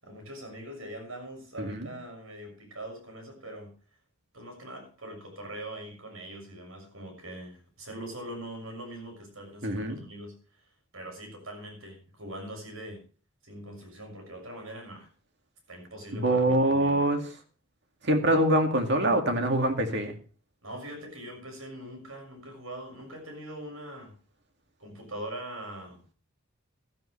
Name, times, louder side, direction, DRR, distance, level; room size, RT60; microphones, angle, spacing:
voice 1, 0.0-3.7 4.3-10.3 10.9-13.0 13.4-15.1 15.7-17.0 20.6-24.1 24.8-26.1, right 1 dB, 85° right, 3 dB, 6.6 m, -42 dB
voice 2, 1.6-1.9 9.6-10.0 16.1-17.2 18.0-20.1, right 1 dB, 60° right, 5 dB, 2.3 m, -24 dB
15.5 x 13.0 x 3.3 m, 0.39 s
head